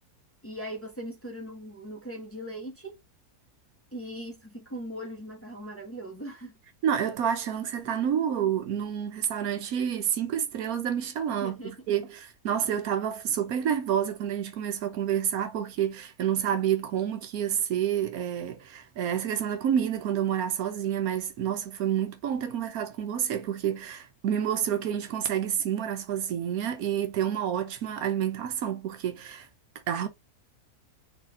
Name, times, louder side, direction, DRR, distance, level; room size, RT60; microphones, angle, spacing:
voice 1, 0.4-3.0 3.9-6.5 11.4-11.8, equal, 10° left, 1.0 m, -39 dB
voice 2, 6.8-29.5 29.9-30.1, right 9 dB, 70° right, 1.1 m, -29 dB
4.0 x 3.2 x 3.7 m
omnidirectional pair, 1.6 m